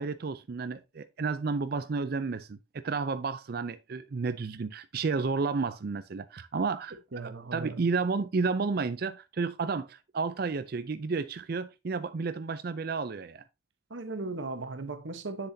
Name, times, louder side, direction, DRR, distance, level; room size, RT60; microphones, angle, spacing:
voice 1, 0.0-2.6 2.8-6.9 7.5-13.4, right 4 dB, 50° right, 0.4 m, -31 dB
voice 2, 7.1-7.8 13.9-15.5, right 3 dB, 70° right, 1.1 m, -37 dB
7.8 x 6.9 x 2.7 m
head